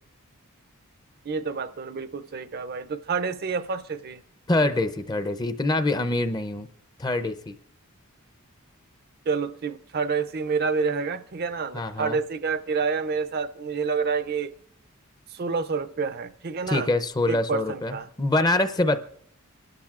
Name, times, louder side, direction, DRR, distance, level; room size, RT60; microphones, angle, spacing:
voice 1, 1.3-4.2 9.3-14.5 15.3-16.9 17.3-18.1, right 5 dB, 45° right, 0.5 m, -28 dB
voice 2, 4.5-6.7 7.0-7.6 11.7-12.2 16.7-19.0, left 2 dB, 20° left, 0.5 m, -25 dB
27.0 x 11.5 x 2.4 m
head